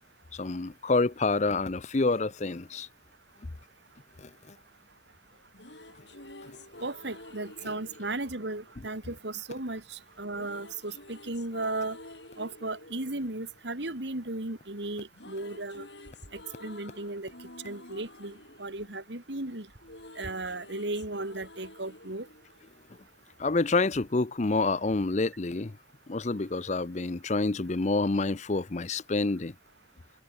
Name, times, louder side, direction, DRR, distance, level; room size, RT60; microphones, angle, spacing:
voice 1, 0.3-2.9 4.2-4.5 23.4-25.8 26.1-29.5, left 3 dB, 35° left, 0.6 m, -28 dB
sound 1, 5.3-9.5 10.3-14.6 14.8-23.3, left 2 dB, 65° left, 6.5 m, -50 dB
voice 2, 6.8-12.0 12.4-15.9 16.6-17.3 17.6-19.7 20.2-22.3, right 2 dB, 70° right, 2.7 m, -35 dB
head